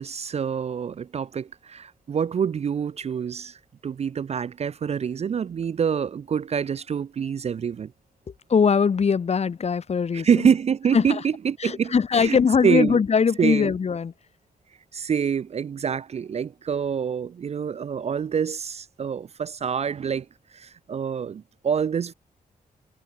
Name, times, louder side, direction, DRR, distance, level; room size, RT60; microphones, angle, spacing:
voice 1, 0.0-7.9 10.1-13.0 13.4-13.7 14.9-20.3 20.5-22.1, right 7 dB, 40° right, 0.4 m, -26 dB
voice 2, 8.5-10.3 10.9-11.2 11.6-14.1, left 6 dB, 40° left, 1.0 m, -21 dB
wide cardioid pair, 125°, 16 cm